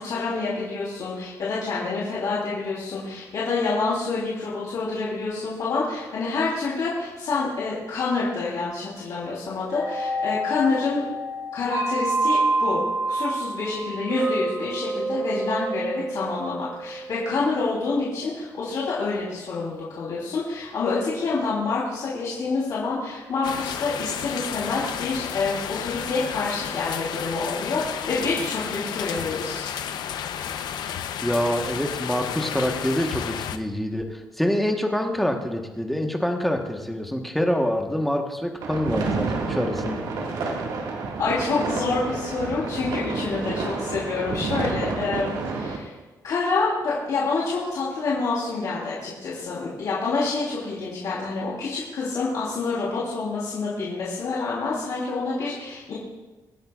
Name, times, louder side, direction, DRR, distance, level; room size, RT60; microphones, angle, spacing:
voice 1, 0.0-11.0 11.5-29.7 41.2-45.9 46.2-55.9, left 4 dB, 60° left, -7 dB, 3.3 m, -27 dB
sound 1, 9.7-17.7, right 2 dB, 60° right, 4.9 m, -28 dB
sound 2, 23.4-33.6, left 9 dB, 85° left, 0.7 m, -32 dB
voice 2, 31.2-40.0, equal, ahead, 2 dB, 1.2 m, -26 dB
sound 3, 38.6-45.8, right 4 dB, 85° right, 1.9 m, -29 dB
24.5 x 10.5 x 2.4 m, 1.2 s
cardioid pair, 155°, 7 cm